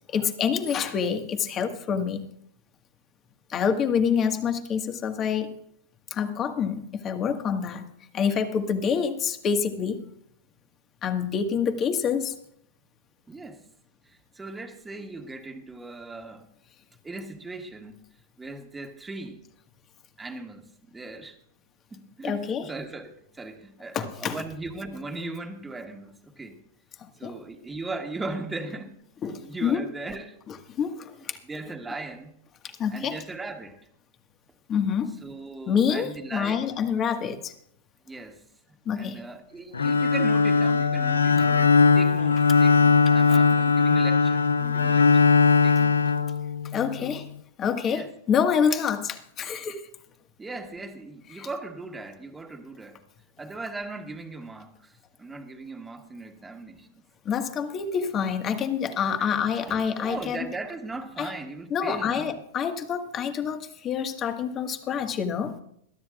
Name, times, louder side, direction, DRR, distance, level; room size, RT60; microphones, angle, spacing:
voice 1, 0.1-2.2 3.5-5.5 6.1-7.8 8.1-10.0 11.0-12.3 22.2-22.7 23.9-24.4 27.2-27.3 29.2-29.8 30.8-31.4 32.8-33.2 34.7-35.2 35.7-37.5 38.9-39.2 46.7-47.3 47.6-49.8 51.4-51.5 57.3-60.5 61.2-61.3 61.7-65.6, left 7 dB, 30° left, 1.7 m, -27 dB
voice 2, 13.3-13.7 14.0-16.5 17.0-18.0 18.4-19.4 20.2-21.4 21.9-26.6 27.2-29.0 29.2-30.4 31.4-32.4 32.9-33.8 34.8-34.9 35.2-36.7 38.1-38.4 38.9-45.3 45.6-46.0 47.0-47.3 47.9-48.1 50.4-53.0 53.4-56.9 59.2-59.4 59.7-62.4, right 3 dB, 15° right, 1.8 m, -38 dB
Bowed string instrument, 39.7-46.9, left 5 dB, 85° left, 0.6 m, -20 dB
21.5 x 12.5 x 2.5 m
hypercardioid pair, 100°, 0 cm